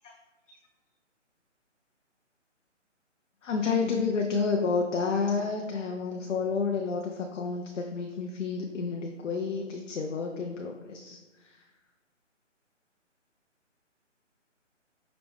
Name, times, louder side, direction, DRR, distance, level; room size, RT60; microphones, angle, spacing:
voice 1, 3.4-11.7, left 5 dB, 75° left, 2 dB, 0.5 m, -30 dB
4.9 x 2.0 x 3.2 m, 1.2 s
figure-of-eight pair, 150°, 37 cm